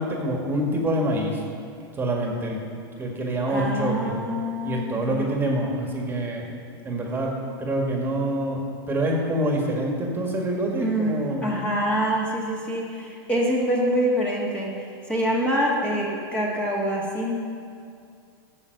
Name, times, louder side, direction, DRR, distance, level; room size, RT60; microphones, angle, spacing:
voice 1, 0.0-1.4 1.9-2.6 3.0-4.2 4.6-6.5 6.8-7.3 7.6-8.6 8.9-11.5, right 1 dB, 15° right, 0 dB, 1.7 m, -26 dB
voice 2, 3.5-5.3 10.8-17.4, equal, 10° left, -3 dB, 1.6 m, -25 dB
11.0 x 7.3 x 6.5 m, 2.3 s
hypercardioid pair, 130°, 13 cm